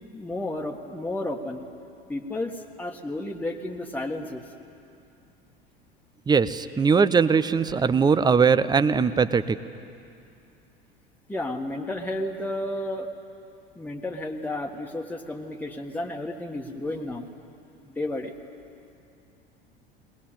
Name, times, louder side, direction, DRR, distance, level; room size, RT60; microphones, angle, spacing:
voice 1, 0.1-1.6 2.1-4.4 11.3-13.1 13.7-17.2 17.9-18.3, left 1 dB, 5° left, 0 dB, 1.6 m, -32 dB
voice 2, 6.3-9.6, right 5 dB, 15° right, 14 dB, 0.7 m, -20 dB
21.5 x 19.5 x 9.2 m, 2.5 s
figure-of-eight pair, 75°, 30 cm